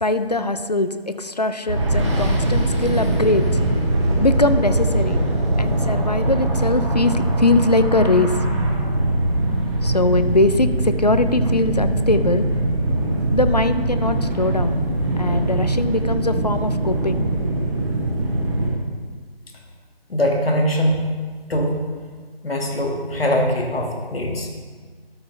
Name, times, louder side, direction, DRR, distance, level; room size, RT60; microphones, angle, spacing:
voice 1, 0.0-3.5 4.2-5.2 5.6-8.3 9.8-12.5 13.3-14.8 15.2-17.3, left 2 dB, 45° left, 11 dB, 0.4 m, -21 dB
sound 1, 1.7-18.7, right 1 dB, 30° right, 1.6 m, -21 dB
voice 2, 20.1-21.1 21.5-21.8 22.4-24.5, equal, 70° left, 1 dB, 1.7 m, -21 dB
13.0 x 5.9 x 3.2 m, 1.5 s
figure-of-eight pair, 165°, 31 cm